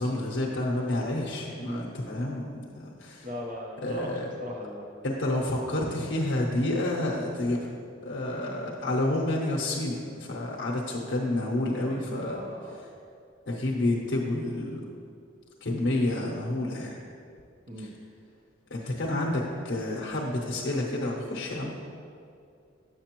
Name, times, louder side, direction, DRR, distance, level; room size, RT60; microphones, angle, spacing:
voice 1, 0.0-3.3 3.8-4.3 5.0-7.8 8.0-12.4 13.5-14.8 15.6-17.0 17.8-17.9 18.7-21.7, left 1 dB, 60° left, -4 dB, 0.7 m, -29 dB
voice 2, 1.6-1.9 3.2-5.1 11.7-12.8 17.7-18.0, left 1 dB, 40° right, -1 dB, 0.9 m, -39 dB
7.3 x 6.3 x 3.0 m, 2.4 s
head